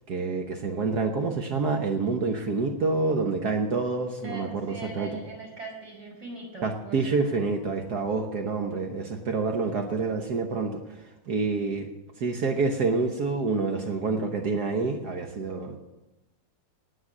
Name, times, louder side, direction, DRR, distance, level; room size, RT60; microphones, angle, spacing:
voice 1, 0.1-5.1 6.6-10.8 11.3-11.9 12.2-15.8, right 4 dB, 60° right, 4 dB, 1.5 m, -27 dB
voice 2, 4.2-7.1, right 2 dB, 40° right, -2 dB, 5.7 m, -40 dB
19.5 x 6.6 x 7.3 m, 1.0 s
omnidirectional pair, 2.0 m